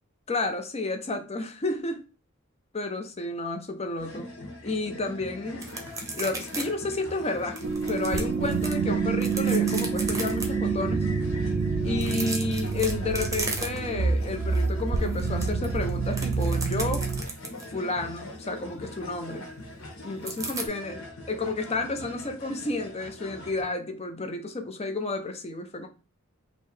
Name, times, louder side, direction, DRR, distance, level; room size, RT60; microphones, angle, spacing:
voice 1, 0.3-2.0 2.7-4.3 4.6-5.7 6.1-7.6 7.9-11.1 11.8-17.0 17.7-19.5 20.0-21.0 21.3-25.9, left 2 dB, 30° left, 0.7 m, -31 dB
sound 1, 4.0-23.6, left 1 dB, 70° left, 1.3 m, -42 dB
sound 2, 5.6-6.6 6.9-7.0 7.6-8.7 9.1-10.5 11.9-14.0 14.4-14.6 14.9-17.7 20.2-20.7, right 3 dB, 15° right, 0.8 m, -35 dB
sound 3, 7.6-17.2, right 4 dB, 55° right, 0.4 m, -27 dB
3.1 x 2.8 x 4.5 m
head